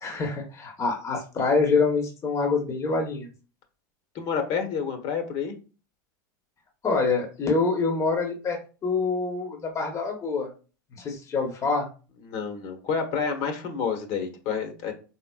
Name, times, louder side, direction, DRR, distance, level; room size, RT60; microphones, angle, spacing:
voice 1, 0.0-3.3 6.8-10.5 10.9-11.9, left 4 dB, 25° left, 3 dB, 0.9 m, -26 dB
voice 2, 4.1-5.5 12.3-14.9, left 6 dB, 55° left, 5 dB, 1.1 m, -29 dB
4.3 x 3.6 x 2.3 m, 0.34 s
hypercardioid pair, 105°, 11 cm